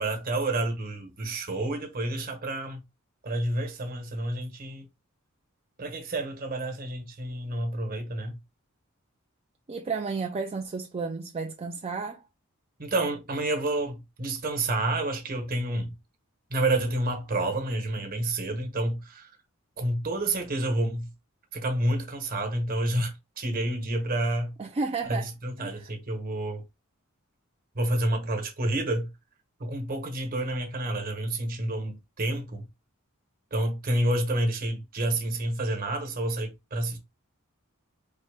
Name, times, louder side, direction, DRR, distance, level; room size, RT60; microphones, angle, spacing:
voice 1, 0.0-2.8 3.2-4.9 5.8-8.4 12.8-15.9 16.5-19.3 19.8-21.1 21.5-24.5 25.1-26.6 27.7-29.1 29.6-32.7 33.5-37.0, right 1 dB, 45° right, 1.2 m, -29 dB
voice 2, 9.7-12.2 24.6-25.3 25.6-25.8, right 4 dB, 30° right, 0.4 m, -32 dB
4.3 x 3.2 x 3.4 m
head